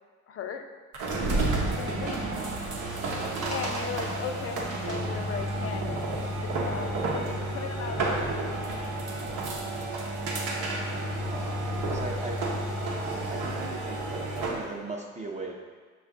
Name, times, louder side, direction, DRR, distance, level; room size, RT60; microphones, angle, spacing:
voice 1, 0.3-0.6 1.8-2.2 3.5-8.7, left 7 dB, 50° left, 6 dB, 0.4 m, -38 dB
sound 1, 0.9-14.7, right 2 dB, 90° right, 0.7 m, -31 dB
voice 2, 3.2-3.5 10.8-11.5 11.9-12.4 13.3-15.6, right 3 dB, 25° right, -1 dB, 0.5 m, -38 dB
5.5 x 2.4 x 3.6 m, 1.4 s
cardioid pair, 90°, 30 cm